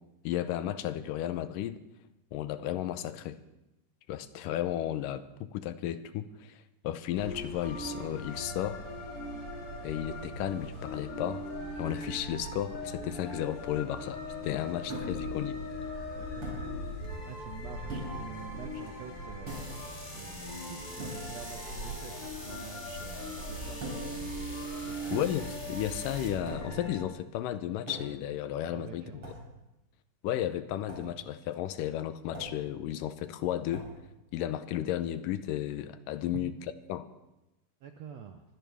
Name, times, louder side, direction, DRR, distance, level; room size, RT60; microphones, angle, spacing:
voice 1, 0.2-1.8 2.3-3.4 4.1-8.8 9.8-11.5 11.8-15.6 25.1-29.3 30.2-33.9 34.3-36.6 36.9-37.1, left 12 dB, 80° left, 12 dB, 2.3 m, -34 dB
sound 1, 7.2-27.0, left 1 dB, 40° left, 4.5 m, -40 dB
sound 2, 14.9-15.3 16.4-16.7 17.9-18.3 19.5-19.8 21.0-21.3 23.8-24.2 25.1-25.5 26.5-26.8 27.9-28.3 29.2-29.5 30.9-31.1 32.3-32.7 33.7-34.0, right 1 dB, 40° right, 6.7 m, -41 dB
voice 2, 16.1-16.8 17.2-24.0 24.9-25.2 28.7-29.3 36.3-36.5 37.8-38.4, right 8 dB, 75° right, 6 dB, 1.6 m, -47 dB
sound 3, 19.5-26.3, left 1 dB, 15° left, 3.0 m, -46 dB
23.5 x 16.5 x 3.5 m, 0.94 s
omnidirectional pair, 4.0 m